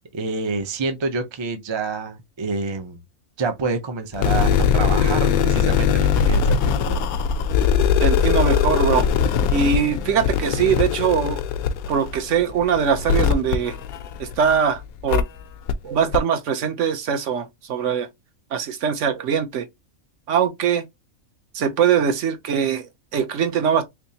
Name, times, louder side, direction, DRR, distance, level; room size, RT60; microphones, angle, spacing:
voice 1, 0.1-3.0 3.4-7.0, right 4 dB, 40° right, 0.4 m, -27 dB
sound 1, 4.1-14.5 15.1-15.2 15.7-15.8 16.1-16.2, left 7 dB, 85° left, 1.0 m, -21 dB
voice 2, 8.0-9.1 9.5-11.4 11.9-13.8 14.2-15.3 15.8-18.1 18.5-19.7 20.3-20.8 21.5-23.8, right 7 dB, 65° right, 1.0 m, -22 dB
3.5 x 3.1 x 2.8 m
omnidirectional pair, 1.5 m